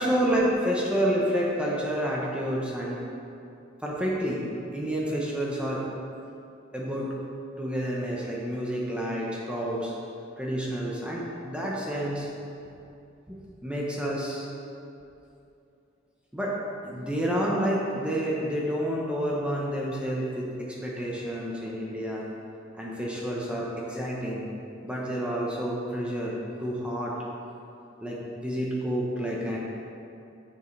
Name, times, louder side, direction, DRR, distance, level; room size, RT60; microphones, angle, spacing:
voice 1, 0.0-3.0 3.8-4.4 4.7-5.8 6.7-7.1 7.6-9.9 10.4-12.3 13.3-14.5 16.3-16.5 16.8-22.2 22.8-24.4 24.8-26.3 26.6-27.1 28.0-29.6, equal, 5° right, -4 dB, 0.8 m, -29 dB
8.6 x 7.2 x 3.2 m, 2.7 s
head